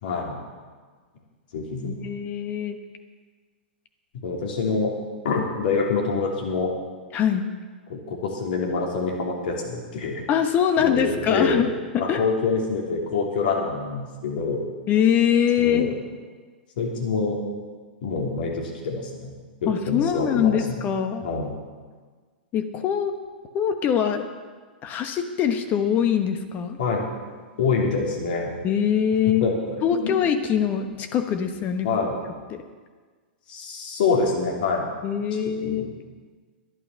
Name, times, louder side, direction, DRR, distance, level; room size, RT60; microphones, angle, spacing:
voice 1, 0.0-0.4 1.5-2.0 4.2-4.9 5.2-6.7 7.9-10.3 10.8-11.6 12.0-14.7 15.6-15.9 16.8-17.4 18.0-19.3 19.6-20.6 21.2-21.5 26.8-27.1 27.6-28.5 29.4-30.1 31.8-32.1 33.5-34.9 35.5-35.9, left 4 dB, 60° left, 0 dB, 3.0 m, -26 dB
voice 2, 1.8-2.8 7.1-7.5 10.3-11.7 11.9-12.2 14.9-15.9 19.7-21.3 22.5-23.2 23.5-24.3 24.8-26.8 28.6-29.5 29.8-31.9 32.5-32.6 35.0-35.9, left 8 dB, 30° left, 7 dB, 1.2 m, -23 dB
11.5 x 11.0 x 5.7 m, 1.5 s
figure-of-eight pair, 105°, 6 cm